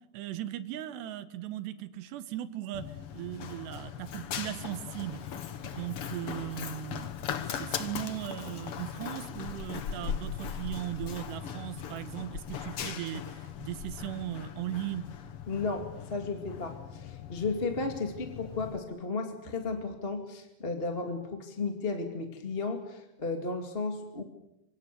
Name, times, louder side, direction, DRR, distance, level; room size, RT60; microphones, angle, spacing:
voice 1, 0.1-5.2 5.6-7.2 7.4-15.1, right 13 dB, 85° right, 12 dB, 3.4 m, -38 dB
Run, 2.7-18.8, left 8 dB, 80° left, 1.3 m, -39 dB
voice 2, 15.5-24.2, left 3 dB, 20° left, 5 dB, 1.7 m, -34 dB
26.5 x 25.5 x 6.8 m, 0.91 s
omnidirectional pair, 4.7 m